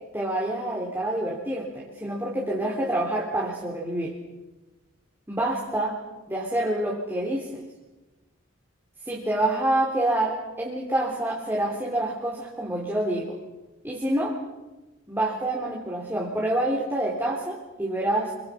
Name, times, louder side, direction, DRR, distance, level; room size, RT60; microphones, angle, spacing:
voice 1, 0.1-4.1 5.3-6.0 6.3-7.6 9.1-13.4 13.8-14.4 15.1-18.3, right 1 dB, 10° right, -3 dB, 3.7 m, -27 dB
29.5 x 25.0 x 5.8 m, 1.1 s
head